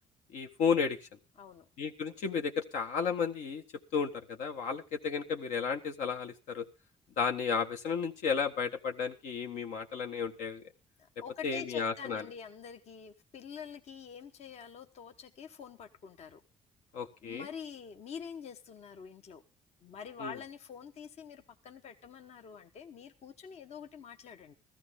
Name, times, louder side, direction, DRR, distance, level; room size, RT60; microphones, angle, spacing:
voice 1, 0.3-1.0 1.8-3.6 3.9-6.6 7.2-10.6 11.4-12.2 16.9-17.5 20.2-20.3, left 6 dB, 80° left, 5 dB, 1.4 m, -33 dB
voice 2, 11.2-16.4 17.2-19.4 19.8-24.5, left 7 dB, 60° left, 7 dB, 1.2 m, -46 dB
15.0 x 13.5 x 3.6 m, 0.29 s
cardioid pair, 85°, 12 cm